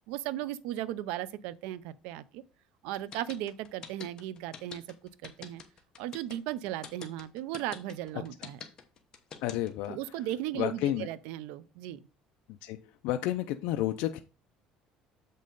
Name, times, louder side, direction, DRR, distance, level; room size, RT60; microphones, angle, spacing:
voice 1, 0.1-2.4 2.8-4.8 5.2-5.6 6.0-8.6 9.9-12.0, right 13 dB, 85° right, 0.5 m, -36 dB
sound 1, 2.9-9.9, left 7 dB, 35° left, 1.1 m, -45 dB
voice 2, 9.4-10.0 10.5-11.1 12.6-12.8 13.0-14.2, left 13 dB, 75° left, 0.4 m, -30 dB
7.5 x 5.3 x 3.9 m
cardioid pair, 160°, 2 cm